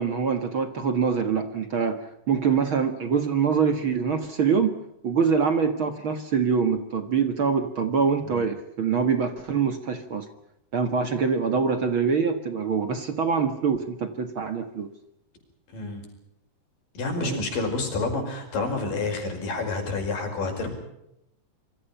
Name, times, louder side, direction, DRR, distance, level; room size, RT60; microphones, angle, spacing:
voice 1, 0.0-4.8 5.0-10.3 10.7-14.9 17.2-17.4, right 6 dB, 45° right, 8 dB, 2.0 m, -24 dB
voice 2, 15.7-16.1 17.0-20.7, left 3 dB, 85° left, 4 dB, 6.9 m, -29 dB
27.0 x 24.5 x 5.6 m, 0.81 s
omnidirectional pair, 3.8 m